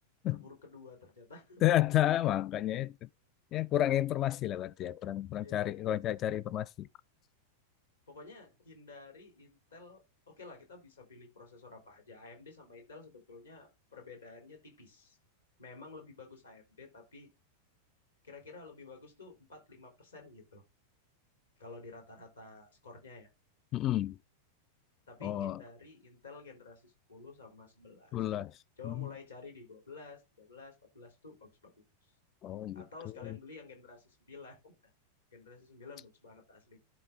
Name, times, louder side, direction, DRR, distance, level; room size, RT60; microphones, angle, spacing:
voice 1, 0.3-1.9 5.4-5.7 8.1-15.2 15.6-17.3 18.2-20.6 21.6-23.3 25.1-28.1 28.8-31.7 32.7-34.7 35.3-36.8, left 3 dB, 75° left, 3.8 m, -51 dB
voice 2, 1.6-2.9 3.5-6.9 23.7-24.2 25.2-25.6 28.1-28.5 28.8-29.1 32.4-32.8 33.2-33.4, left 13 dB, 35° left, 0.3 m, -31 dB
11.5 x 3.9 x 3.6 m
figure-of-eight pair, 90°, 0 cm